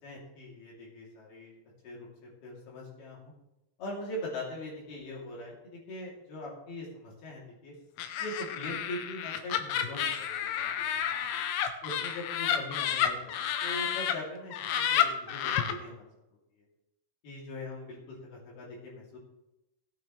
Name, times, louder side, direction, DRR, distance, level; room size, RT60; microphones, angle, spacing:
voice 1, 0.0-1.5 1.8-3.3 3.8-7.7 8.2-11.2 11.8-16.0 16.6-16.7 17.2-19.2, left 1 dB, 60° left, -4 dB, 4.8 m, -42 dB
Laughter, 8.0-14.1 14.5-15.7, left 10 dB, 80° left, 3.0 m, -30 dB
17.0 x 9.3 x 3.3 m, 0.93 s
omnidirectional pair, 5.3 m